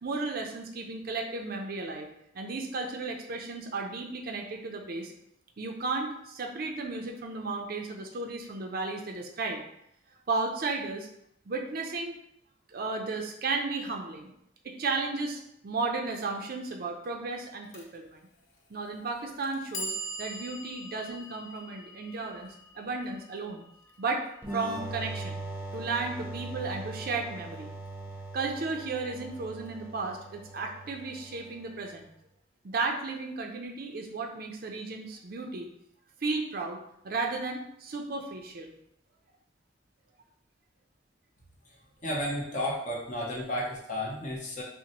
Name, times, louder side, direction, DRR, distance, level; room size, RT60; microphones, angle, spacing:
voice 1, 0.0-2.1 2.3-5.1 5.6-9.6 10.3-11.1 11.5-12.2 12.7-14.3 14.6-18.2 18.7-23.6 24.0-24.2 24.5-25.4 25.7-27.7 28.3-32.1 32.6-35.7 36.2-36.8 37.0-38.7 42.5-42.6, right 3 dB, 50° right, 2 dB, 0.5 m, -34 dB
Clock, 17.7-17.8 18.8-18.9 19.4-25.5, right 1 dB, 85° left, 0.7 m, -43 dB
sound 1, 24.4-31.9, right 2 dB, 10° right, 0.7 m, -41 dB
voice 2, 42.0-44.6, left 1 dB, 40° left, -4 dB, 0.8 m, -32 dB
5.8 x 2.1 x 2.9 m, 0.75 s
head